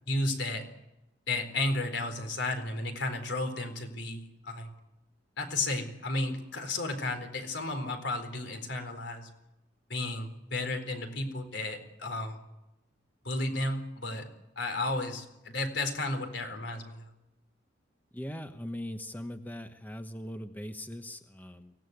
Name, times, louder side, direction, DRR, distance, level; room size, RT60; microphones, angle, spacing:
voice 1, 0.0-0.7 1.3-4.7 5.4-9.3 9.9-12.4 13.2-14.3 14.6-17.1, left 2 dB, 70° left, 7 dB, 4.2 m, -33 dB
voice 2, 18.1-21.7, left 1 dB, 10° left, 7 dB, 1.1 m, -40 dB
24.0 x 18.0 x 9.4 m, 0.91 s
head